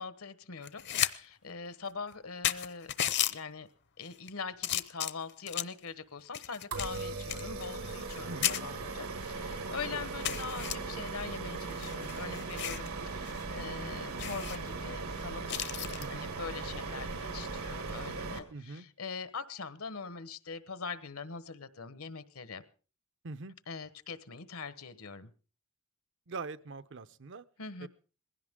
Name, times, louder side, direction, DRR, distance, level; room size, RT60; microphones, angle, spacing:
voice 1, 0.0-2.9 3.3-3.7 4.0-22.6 23.7-25.3 27.6-27.9, left 5 dB, 80° left, 13 dB, 1.2 m, -42 dB
sound 1, 0.6-1.1 1.5-1.6 2.1-2.2 2.4-3.3 4.0-4.3 4.6-5.8 6.3-8.2 8.4-8.6 9.2-9.3 9.6-9.7 10.2-10.7 11.6-12.9 13.3-13.4 13.7-13.8 14.2-14.6 15.5-16.1 17.8-18.0, left 12 dB, 50° left, 0.7 m, -34 dB
sound 2, 6.7-18.4, right 3 dB, 85° right, 2.0 m, -38 dB
voice 2, 8.3-8.6 9.9-10.0 10.3-10.5 16.0-16.3 18.5-18.9 23.2-23.6 26.3-27.4 27.8-27.9, right 3 dB, 60° right, 13 dB, 0.7 m, -43 dB
20.5 x 16.5 x 3.7 m, 0.38 s
head